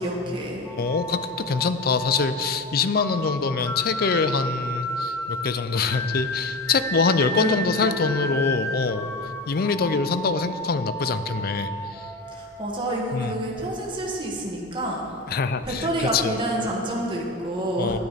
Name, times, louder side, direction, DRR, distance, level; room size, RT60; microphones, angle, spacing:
voice 1, 0.0-0.7 7.3-7.5 7.8-8.0 12.3-15.1 15.7-18.0, right 1 dB, 25° right, -3 dB, 1.4 m, -28 dB
voice 2, 0.7-9.1 9.5-12.1 13.1-13.3 15.3-16.3 17.8-18.0, left 4 dB, 55° left, 12 dB, 0.5 m, -24 dB
sound 1, 0.7-13.5, equal, 15° left, 0.8 m, -33 dB
9.9 x 9.4 x 5.1 m, 3.0 s
head